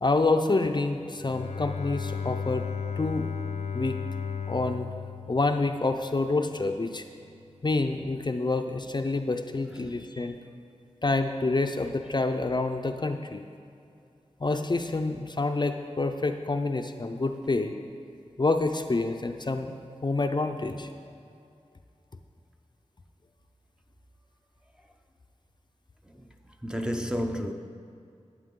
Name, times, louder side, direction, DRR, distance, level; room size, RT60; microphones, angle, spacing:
voice 1, 0.0-2.7 3.0-3.3 3.7-4.0 4.5-4.9 5.3-7.0 7.6-10.4 11.0-13.4 14.4-17.7 18.4-19.7 20.0-20.9, left 3 dB, 40° left, 0.5 m, -27 dB
Bowed string instrument, 1.2-6.2, left 6 dB, 70° left, 0.7 m, -34 dB
voice 2, 26.6-27.5, equal, 5° right, 0.6 m, -30 dB
11.5 x 8.9 x 3.7 m
wide cardioid pair, 60°, 12 cm